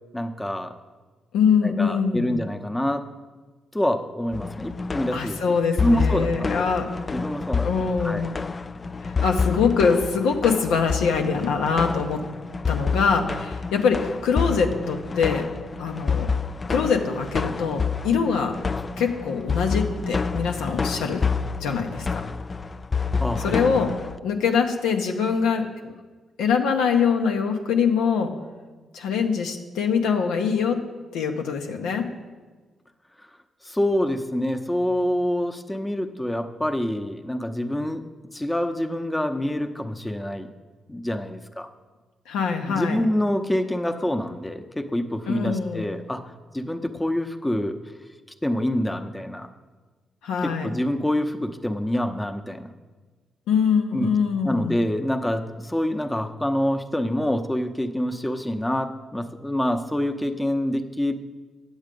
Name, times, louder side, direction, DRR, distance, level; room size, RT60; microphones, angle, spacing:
voice 1, 0.1-0.7 1.6-3.1 3.7-5.4 5.8-6.7 7.1-7.7 8.0-8.2 23.2-23.6 33.2-33.3 33.6-38.0 38.3-40.5 40.9-41.7 42.7-46.2 46.5-47.8 48.4-49.5 50.4-52.7 53.9-54.1 54.4-61.2, left 1 dB, 10° left, 6 dB, 0.8 m, -26 dB
voice 2, 1.3-2.3 5.1-6.9 7.6-8.3 9.0-12.2 12.7-15.4 15.8-16.3 16.7-18.5 19.0-21.2 21.6-22.2 23.4-23.9 24.2-25.9 26.4-28.3 28.9-30.8 31.1-32.1 42.3-43.0 45.3-45.9 50.2-50.7 53.5-54.8, left 6 dB, 85° left, 4 dB, 0.8 m, -23 dB
sound 1, 4.3-24.2, left 5 dB, 35° left, 0.3 m, -28 dB
8.9 x 7.3 x 5.3 m, 1.4 s
supercardioid pair, 55°, 0 cm